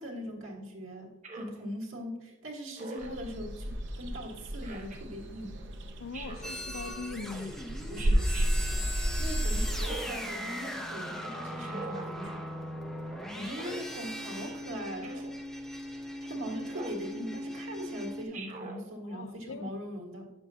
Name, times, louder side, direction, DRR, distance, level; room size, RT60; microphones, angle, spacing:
voice 1, 0.0-5.7 7.9-8.9 9.2-12.4 13.4-15.4 16.2-20.3, equal, 90° right, 1.6 m, -41 dB
Speech synthesizer, 1.2-1.6 2.8-3.2 4.6-5.0 6.1-6.6 8.0-8.5 9.7-10.3 11.6-12.1 13.4-13.8 15.0-15.4 16.7-17.1 18.3-18.8, right 3 dB, 35° right, 1.0 m, -42 dB
sound 1, 3.0-9.8, equal, 60° right, 0.7 m, -32 dB
voice 2, 6.0-7.6 19.0-19.7, left 4 dB, 80° left, 0.4 m, -41 dB
sound 2, 6.4-18.2, equal, 5° left, 0.7 m, -39 dB
9.0 x 6.8 x 2.7 m
head